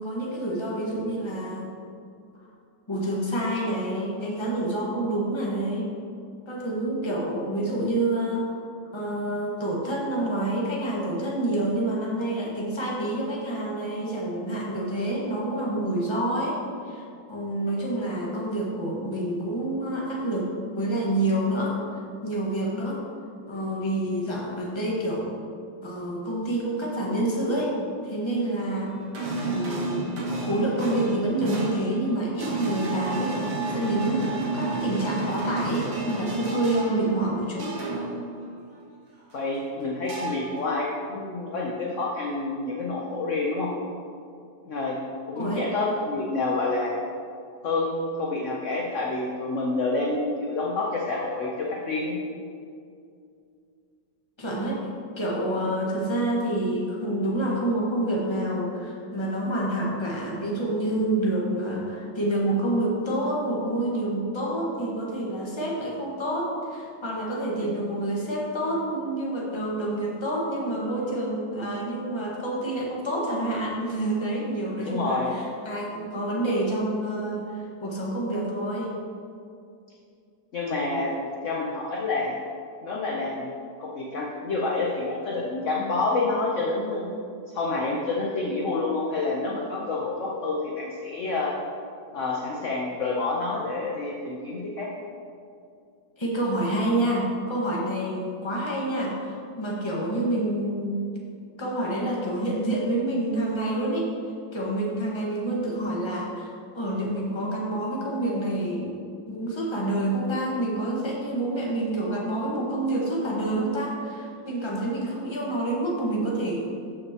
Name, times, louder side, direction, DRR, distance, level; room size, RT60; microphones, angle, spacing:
voice 1, 0.0-1.7 2.9-5.9 6.5-8.5 8.9-16.6 16.8-21.8 22.2-23.0 23.5-25.3 25.8-27.7 28.0-28.9 29.4-30.1 30.4-37.8 45.3-45.7 54.4-54.8 55.2-78.9 96.2-101.1 101.6-104.1 104.5-109.0 109.3-116.9, right 1 dB, 15° left, -4 dB, 1.4 m, -28 dB
sound 1, 28.9-38.3 40.1-40.6, right 3 dB, 90° right, 2.4 m, -31 dB
voice 2, 39.3-43.7 44.6-45.0 45.3-47.0 47.6-52.1 67.6-67.8 74.8-75.4 80.5-81.1 81.4-82.3 82.8-83.5 83.8-87.1 87.5-91.6 92.1-94.9, left 3 dB, 50° left, -3 dB, 1.0 m, -28 dB
13.5 x 6.5 x 3.0 m, 2.4 s
omnidirectional pair, 2.0 m